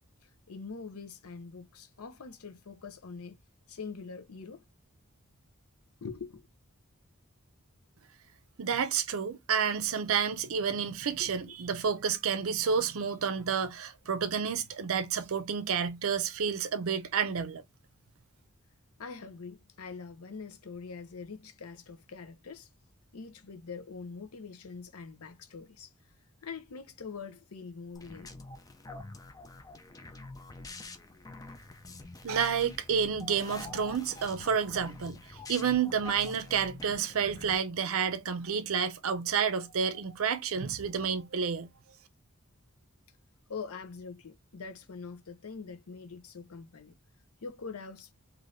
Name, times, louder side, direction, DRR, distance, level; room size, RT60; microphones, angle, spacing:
voice 1, 0.0-3.4 3.7-4.6 6.0-6.5 11.2-11.5 19.0-22.7 23.1-25.9 26.4-28.3 43.5-46.9 47.4-48.1, left 5 dB, 85° left, 0.7 m, -44 dB
voice 2, 8.6-17.6 32.2-35.2 35.5-41.7, right 6 dB, 70° right, 0.5 m, -30 dB
sound 1, 27.9-37.6, left 3 dB, 15° left, 0.4 m, -46 dB
3.3 x 2.6 x 2.5 m
head